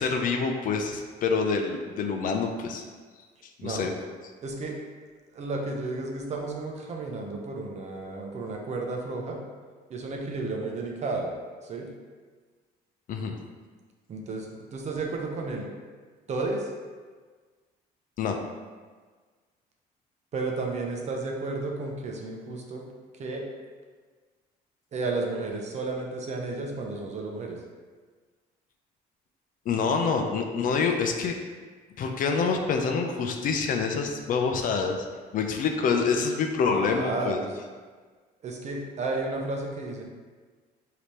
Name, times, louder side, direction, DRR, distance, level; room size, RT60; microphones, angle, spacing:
voice 1, 0.0-2.8 3.6-3.9 13.1-13.4 18.2-18.4 29.7-31.3 32.0-35.1 35.3-37.4, left 5 dB, 55° left, 4 dB, 0.5 m, -26 dB
voice 2, 4.4-4.8 5.3-9.4 9.9-11.4 11.6-11.9 14.1-15.7 16.3-16.7 20.3-22.8 23.2-23.5 24.9-27.6 36.7-37.5 38.4-40.0, right 3 dB, 40° right, 1 dB, 0.7 m, -32 dB
5.0 x 2.8 x 3.1 m, 1.5 s
cardioid pair, 110°, 17 cm